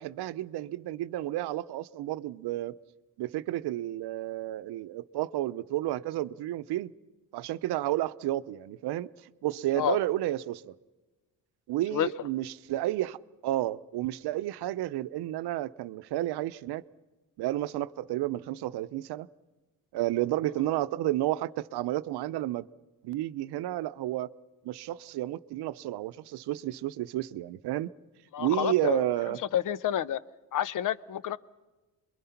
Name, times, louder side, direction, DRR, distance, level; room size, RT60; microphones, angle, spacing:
voice 1, 0.0-2.7 3.2-6.9 7.3-9.1 9.4-10.7 11.7-16.8 17.4-19.3 19.9-22.7 23.0-24.3 24.6-27.9 28.4-29.4, right 14 dB, 85° right, 0.7 m, -31 dB
voice 2, 28.3-29.0 29.5-30.2 30.5-31.4, left 10 dB, 55° left, 0.8 m, -29 dB
28.0 x 22.5 x 5.8 m
cardioid pair, 130°, 38 cm